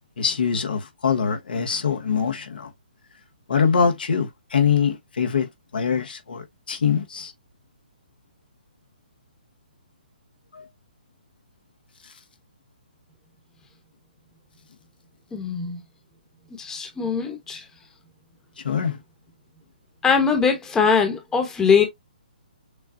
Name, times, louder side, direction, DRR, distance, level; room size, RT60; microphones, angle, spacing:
voice 1, 0.2-2.7 3.5-7.3 10.5-10.6 18.6-19.0, left 6 dB, 75° left, 1.3 m, -23 dB
voice 2, 15.3-15.8 16.6-17.6 20.0-21.8, left 6 dB, 10° left, 1.2 m, -21 dB
6.6 x 2.3 x 2.5 m
hypercardioid pair, 145°, 5 cm